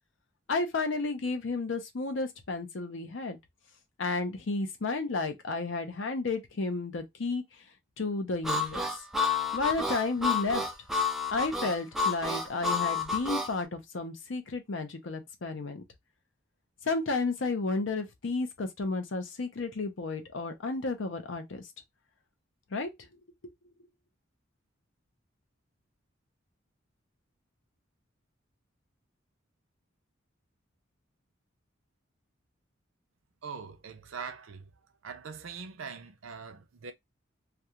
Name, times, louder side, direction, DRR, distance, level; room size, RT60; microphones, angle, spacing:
voice 1, 0.5-3.4 4.0-7.4 8.0-9.0 9.5-10.6 11.3-15.8 16.8-21.6 22.7-22.9, left 3 dB, 70° left, 0.6 m, -32 dB
Harmonica, 8.4-13.5, left 4 dB, ahead, 0.3 m, -30 dB
voice 2, 33.4-34.7 35.0-36.9, right 5 dB, 90° right, 0.5 m, -42 dB
2.3 x 2.3 x 2.8 m
head